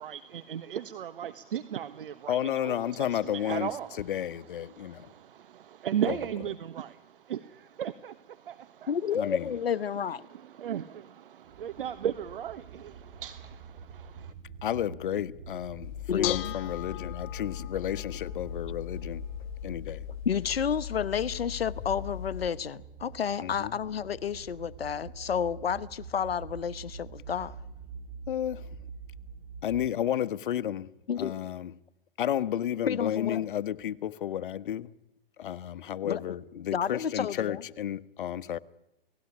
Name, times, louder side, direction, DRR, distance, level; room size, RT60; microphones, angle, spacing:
voice 1, 0.0-9.2 9.9-14.3, right 10 dB, 60° right, 1.4 m, -37 dB
voice 2, 2.3-3.7 4.0-5.1 6.1-6.2 9.1-9.5 14.6-19.2 19.6-20.0 23.4-23.8 28.3-28.8 29.6-30.9 31.2-31.7 32.2-34.9 35.4-38.6, left 10 dB, 55° left, 1.3 m, -32 dB
voice 3, 8.9-10.2 16.1-16.5 20.3-27.5 31.1-31.3 32.9-33.4 36.0-36.2 36.7-37.6, left 7 dB, 75° left, 1.1 m, -30 dB
sound 1, 11.4-29.9, right 5 dB, 25° right, 4.3 m, -46 dB
Bell / Dishes pots and pans, 15.8-22.5, left 13 dB, 40° left, 2.1 m, -38 dB
29.5 x 18.5 x 9.9 m
hypercardioid pair, 125°, 30 cm